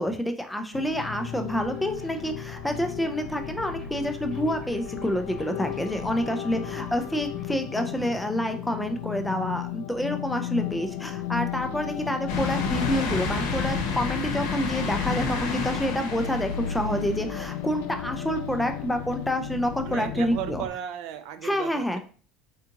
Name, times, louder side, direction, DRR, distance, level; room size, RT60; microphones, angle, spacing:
voice 1, 0.0-20.6 21.4-22.0, equal, 5° left, 6 dB, 0.3 m, -28 dB
sound 1, 0.7-20.7, left 10 dB, 90° left, 0.3 m, -34 dB
sound 2, 1.5-7.5, right 2 dB, 15° right, 1.0 m, -47 dB
voice 2, 6.2-7.1 13.9-14.4 19.9-22.0, right 10 dB, 65° right, 9 dB, 0.4 m, -37 dB
sound 3, 12.3-17.8 18.3-18.4 19.8-19.9, left 3 dB, 70° left, 0.8 m, -31 dB
3.5 x 2.5 x 2.8 m, 0.39 s
cardioid pair, 150°, 0 cm